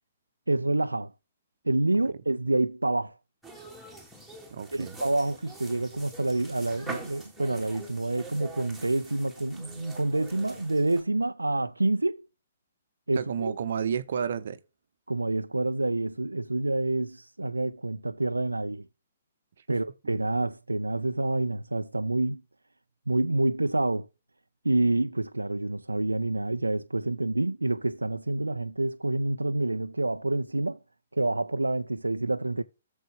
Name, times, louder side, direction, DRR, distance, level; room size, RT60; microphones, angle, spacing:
voice 1, 0.5-1.1 1.6-3.2 4.7-12.3 13.1-13.5 15.1-18.9 19.7-22.4 23.1-24.1 24.6-30.8 31.1-32.6, right 2 dB, 80° right, 0.5 m, -28 dB
sound 1, 3.4-11.0, right 2 dB, ahead, 2.8 m, -45 dB
voice 2, 4.5-5.0 13.2-14.6 19.7-19.8, right 7 dB, 55° right, 0.9 m, -31 dB
7.7 x 7.2 x 3.5 m
figure-of-eight pair, 125°, 0 cm